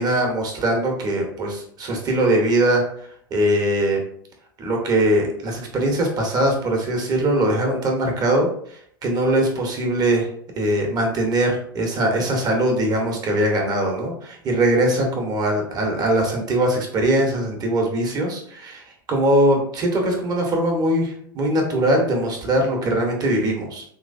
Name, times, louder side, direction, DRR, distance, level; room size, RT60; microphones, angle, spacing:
voice 1, 0.0-2.8 3.3-4.0 4.6-10.3 10.6-23.8, right 1 dB, 35° right, 1 dB, 1.1 m, -21 dB
3.1 x 3.1 x 2.6 m, 0.64 s
hypercardioid pair, 100°, 12 cm